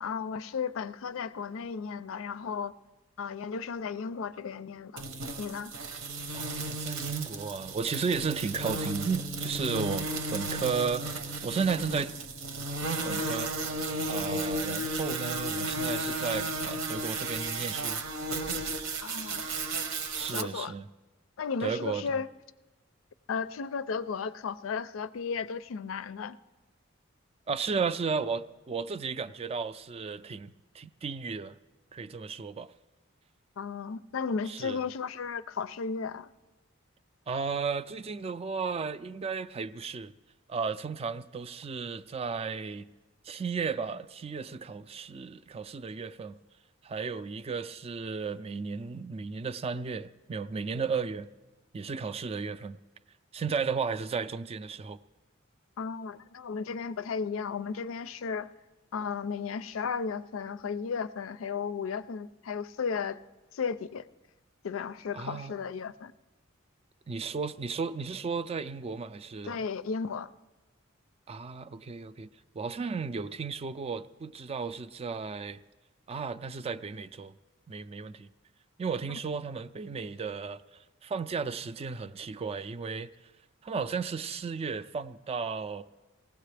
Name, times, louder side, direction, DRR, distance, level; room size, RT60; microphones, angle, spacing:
voice 1, 0.0-2.7 3.2-5.0 5.4-5.7 19.0-19.5 20.3-20.7 21.4-22.3 23.3-26.4 33.6-36.3 55.8-58.5 58.9-63.2 63.5-64.0 64.6-66.1 69.5-70.3 79.1-79.2, left 5 dB, 75° left, 0.4 m, -34 dB
sound 1, 5.0-20.4, right 2 dB, 85° right, 1.0 m, -34 dB
voice 2, 6.3-11.0 11.4-12.1 13.0-13.5 14.1-18.0 20.2-20.9 21.6-22.2 27.5-31.5 31.9-32.7 34.5-34.8 37.3-40.1 40.5-42.9 43.2-46.4 46.8-51.3 51.7-52.8 53.3-55.0 65.1-65.5 67.1-69.6 71.3-72.3 72.5-75.6 76.1-77.4 77.7-78.3 78.8-80.6 81.0-83.1 83.6-85.8, right 5 dB, 30° right, 0.3 m, -34 dB
19.0 x 16.0 x 3.3 m
head